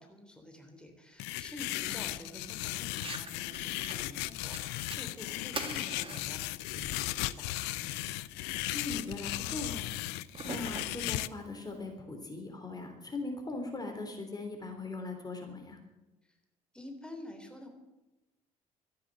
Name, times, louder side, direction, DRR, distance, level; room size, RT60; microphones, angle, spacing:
voice 1, 0.0-7.9 16.2-16.4 16.7-17.7, left 1 dB, 5° left, 4 dB, 3.4 m, -49 dB
sound 1, 1.2-11.3, left 17 dB, 65° left, 0.5 m, -36 dB
Fire, 2.9-11.9, right 3 dB, 30° right, 2.1 m, -47 dB
voice 2, 8.7-9.9 10.4-15.8, left 3 dB, 20° left, 3 dB, 3.4 m, -40 dB
13.5 x 10.0 x 8.8 m, 1.0 s
hypercardioid pair, 50°, 18 cm